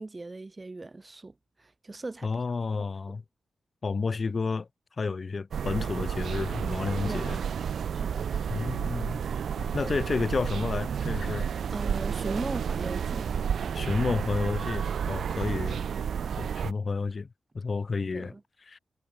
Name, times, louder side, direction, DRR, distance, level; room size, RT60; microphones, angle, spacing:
voice 1, 0.0-1.3 1.6-2.3 2.8-2.9 7.0-7.5 7.9-8.3 11.7-13.3 18.1-18.4, right 3 dB, 30° right, 5.3 m, -38 dB
voice 2, 2.2-3.2 3.8-4.7 5.0-7.4 8.5-9.2 9.6-11.5 13.7-15.9 16.4-17.3 17.5-18.3 18.6-18.8, left 4 dB, 45° left, 1.5 m, -31 dB
sound 1, 5.5-16.7, right 7 dB, 80° right, 1.0 m, -31 dB
sound 2, 10.8-15.0 15.6-15.7, right 4 dB, 45° right, 7.4 m, -45 dB
cardioid pair, 70°, 0 cm